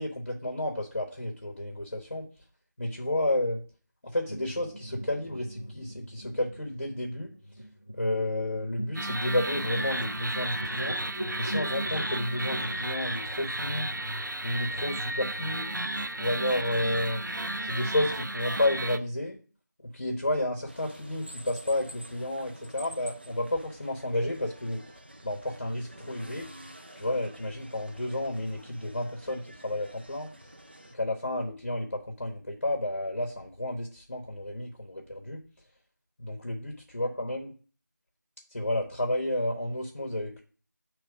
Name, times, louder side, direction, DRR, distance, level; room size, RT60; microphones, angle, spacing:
voice 1, 0.0-2.3 2.8-3.6 4.0-7.3 7.9-11.0 11.4-13.9 14.4-15.7 16.2-17.2 17.6-19.4 19.9-24.8 25.2-26.5 27.0-30.3 31.0-35.4 36.2-37.5 38.5-40.4, left 1 dB, 45° left, 0 dB, 1.0 m, -31 dB
sound 1, 4.3-12.8, equal, 25° left, 0.4 m, -41 dB
sound 2, 9.0-19.0, right 1 dB, 90° right, 0.6 m, -33 dB
sound 3, 20.7-30.9, equal, 35° right, 0.5 m, -49 dB
7.8 x 3.1 x 4.9 m, 0.39 s
figure-of-eight pair, 170°, 10 cm